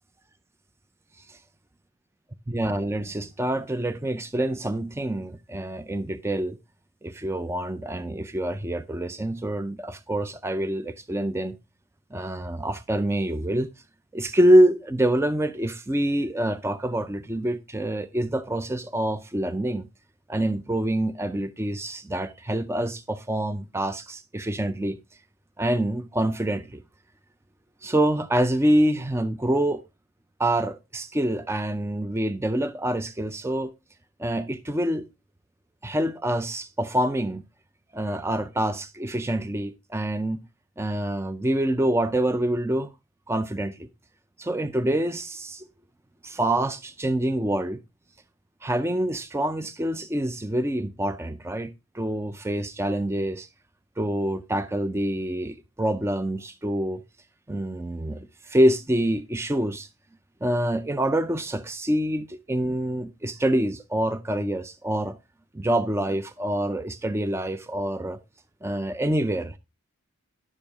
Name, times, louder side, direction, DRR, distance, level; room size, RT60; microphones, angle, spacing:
voice 1, 2.5-6.6 7.0-11.6 12.1-13.7 14.1-19.9 20.3-25.0 25.6-26.8 27.8-29.8 30.4-33.7 34.2-35.1 35.8-37.4 37.9-40.4 40.8-42.9 43.3-43.9 44.4-45.7 46.2-47.8 48.6-53.5 54.0-57.0 57.5-59.9 60.4-65.2 65.5-68.2 68.6-69.6, right 1 dB, 10° right, 0.4 m, -26 dB
11.0 x 7.0 x 3.5 m
head